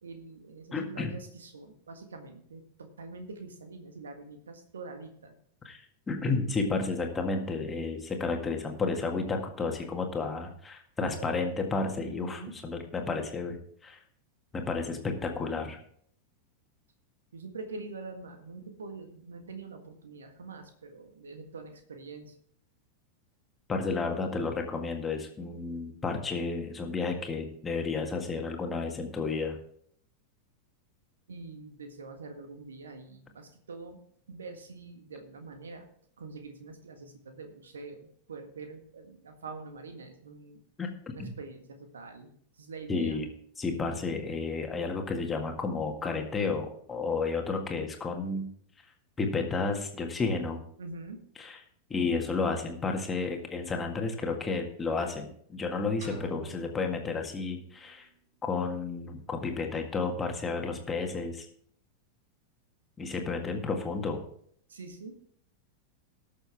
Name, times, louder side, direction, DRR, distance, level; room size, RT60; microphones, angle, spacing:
voice 1, 0.0-5.3 11.0-11.6 12.1-12.5 17.3-22.4 31.3-34.0 34.3-35.9 36.2-40.6 41.1-43.2 50.8-51.2 64.7-65.2, right 3 dB, 70° right, 6 dB, 1.6 m, -45 dB
voice 2, 0.7-1.1 5.7-13.6 13.8-14.0 14.5-15.8 23.7-29.6 40.8-40.9 41.2-41.3 42.9-43.3 43.6-48.5 49.2-50.6 51.4-51.6 51.9-58.1 58.4-61.5 63.0-64.2, left 4 dB, 15° left, 3 dB, 1.9 m, -32 dB
sound 1, 56.0-57.9, right 4 dB, 50° right, 3.0 m, -47 dB
19.0 x 6.7 x 3.5 m, 0.62 s
figure-of-eight pair, 90°, 0 cm